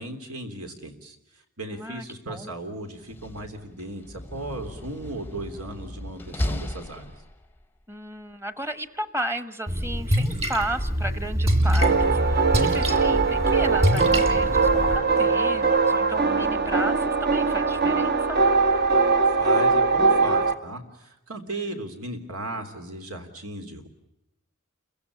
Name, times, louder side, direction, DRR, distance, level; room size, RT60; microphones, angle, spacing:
voice 1, 0.0-7.1 18.9-23.9, right 2 dB, 80° right, 6 dB, 3.5 m, -36 dB
voice 2, 1.7-2.5 7.9-18.4, right 1 dB, 10° right, 11 dB, 1.2 m, -34 dB
Slam, 2.9-7.6, left 1 dB, 10° left, 0.8 m, -35 dB
Splash splatter, 9.7-15.0, equal, 30° right, 2.8 m, -25 dB
sound 1, 11.8-20.5, right 4 dB, 45° right, 1.1 m, -21 dB
29.0 x 16.0 x 10.0 m, 0.91 s
head